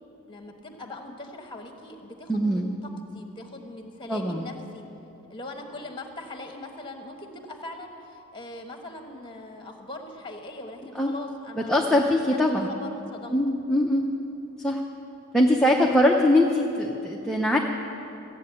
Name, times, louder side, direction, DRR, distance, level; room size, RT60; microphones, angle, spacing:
voice 1, 0.2-4.8 5.3-12.2 12.5-13.4, left 2 dB, 20° left, 4 dB, 1.2 m, -41 dB
voice 2, 2.3-2.7 4.1-4.5 11.0-11.1 11.6-12.7 13.3-14.0 14.6-14.8 15.3-17.6, left 1 dB, 5° left, -1 dB, 0.6 m, -22 dB
14.5 x 7.6 x 9.0 m, 3.0 s
head